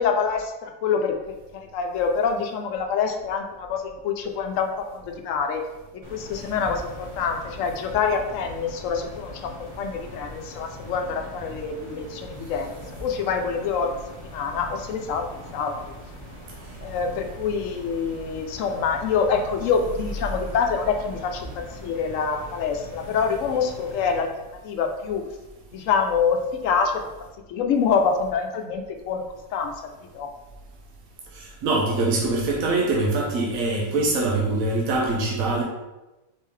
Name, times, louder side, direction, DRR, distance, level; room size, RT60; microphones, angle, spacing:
voice 1, 0.0-5.6 5.9-13.9 14.2-15.9 16.8-24.3 24.6-25.2 25.7-27.0 27.5-29.2 29.5-29.7 30.1-30.3, left 6 dB, 70° left, 4 dB, 0.9 m, -26 dB
sound 1, 6.0-24.2, left 1 dB, 25° right, 1.1 m, -42 dB
voice 2, 31.3-35.6, right 2 dB, 80° right, -2 dB, 1.2 m, -23 dB
4.5 x 3.6 x 3.2 m, 1.0 s
omnidirectional pair, 1.4 m